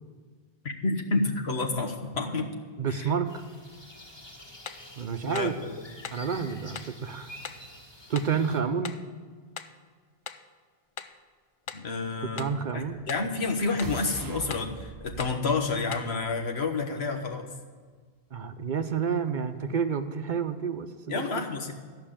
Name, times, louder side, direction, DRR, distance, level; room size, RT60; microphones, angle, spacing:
voice 1, 0.6-2.5 2.9-3.1 5.3-5.8 11.7-17.5 21.1-21.7, left 3 dB, 85° left, 3 dB, 1.4 m, -30 dB
voice 2, 2.8-3.4 5.0-5.5 6.1-7.3 8.1-9.0 12.4-13.0 18.3-21.4, right 6 dB, 55° right, 8 dB, 0.8 m, -29 dB
sound 1, 3.3-8.6, left 1 dB, 25° left, 1.6 m, -48 dB
sound 2, 4.7-4.9 5.4-5.6 6.0-6.3 6.8-7.0 7.4-7.7 8.2-8.4 8.8-9.1 9.6-9.8 10.3-10.5 11.0-11.2 11.7-11.9 12.4-12.6 13.1-13.3 13.8-14.0 14.5-14.7 15.2-15.4 15.9-16.1, left 6 dB, 45° left, 0.4 m, -41 dB
sound 3, 12.8-16.9, right 5 dB, 35° right, 0.3 m, -43 dB
14.0 x 5.9 x 8.7 m, 1.5 s
omnidirectional pair, 1.0 m